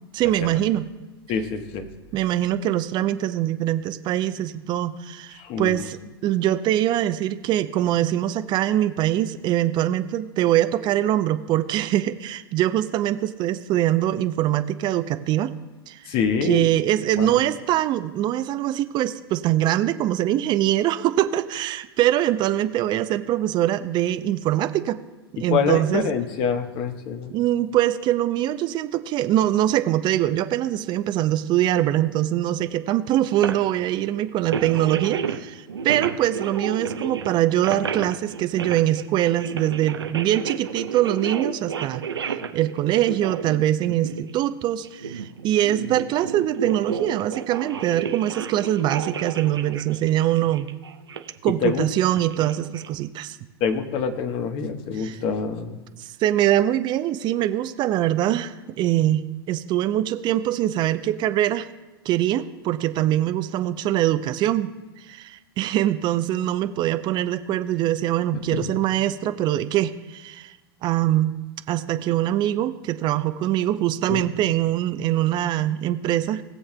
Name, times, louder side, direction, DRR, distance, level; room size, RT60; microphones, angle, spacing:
voice 1, 0.1-0.9 2.1-15.5 15.9-16.1 16.4-25.0 25.3-26.0 27.3-50.7 51.4-53.4 54.9-55.2 56.0-61.7 62.1-64.7 65.1-70.6 70.8-71.4 71.7-76.4, right 13 dB, 35° right, 10 dB, 0.5 m, -23 dB
voice 2, 1.3-1.9 5.4-5.8 16.1-16.6 17.2-17.4 25.5-27.3 51.6-51.9 53.6-55.8 68.5-68.7 74.1-74.3, left 6 dB, 45° left, 7 dB, 1.1 m, -26 dB
sound 1, 33.4-33.8 34.5-35.4 35.7-44.4 44.8-51.4 52.2-52.9, right 6 dB, 85° right, 0.7 m, -31 dB
19.5 x 7.1 x 2.2 m, 1.2 s
hypercardioid pair, 100°, 13 cm